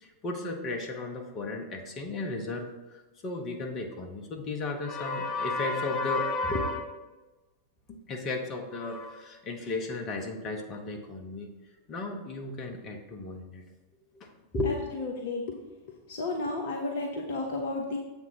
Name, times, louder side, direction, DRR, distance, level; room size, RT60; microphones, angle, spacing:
voice 1, 0.0-6.9 8.1-11.5 11.9-13.6 14.1-14.7, left 3 dB, 30° left, 2 dB, 1.1 m, -33 dB
voice 2, 14.6-15.4 16.1-18.0, left 2 dB, 55° left, 1 dB, 0.7 m, -32 dB
7.4 x 3.6 x 5.9 m, 1.2 s
figure-of-eight pair, 90°, 0 cm